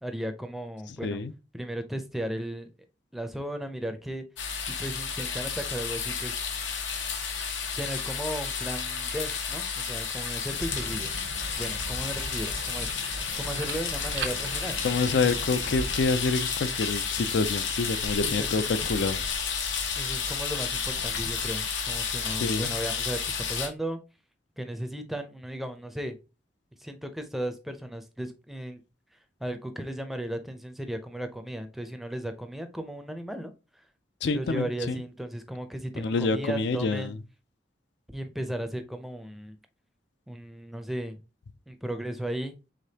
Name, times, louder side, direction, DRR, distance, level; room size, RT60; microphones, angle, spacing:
voice 1, 0.0-1.2 1.5-2.7 3.1-4.2 4.7-6.4 7.8-11.1 11.6-12.9 13.3-14.8 18.2-18.7 19.9-24.0 24.6-26.2 26.8-28.8 29.4-33.8 34.3-37.1 38.1-39.6 40.3-41.2 41.7-42.5, right 1 dB, ahead, 0.5 m, -35 dB
voice 2, 1.0-1.3 14.8-19.2 22.4-22.7 34.2-34.9 36.0-37.2, left 4 dB, 70° left, 0.4 m, -27 dB
sound 1, 4.4-23.7, left 6 dB, 90° left, 1.0 m, -31 dB
sound 2, 10.6-16.1, right 2 dB, 75° right, 0.7 m, -38 dB
5.0 x 3.7 x 2.8 m
head